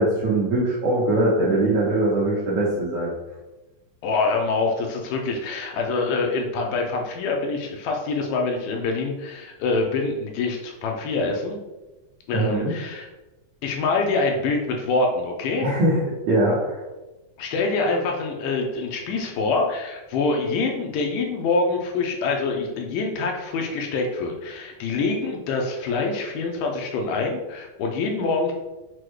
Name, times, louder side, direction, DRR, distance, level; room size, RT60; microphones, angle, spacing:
voice 1, 0.0-3.1 12.3-12.7 15.6-16.0 16.3-16.8, right 1 dB, 80° right, -7 dB, 1.5 m, -21 dB
voice 2, 4.0-11.6 12.3-13.1 13.6-15.7 17.4-28.5, left 3 dB, 80° left, 1 dB, 2.0 m, -25 dB
6.0 x 2.1 x 3.1 m, 1.1 s
omnidirectional pair, 4.0 m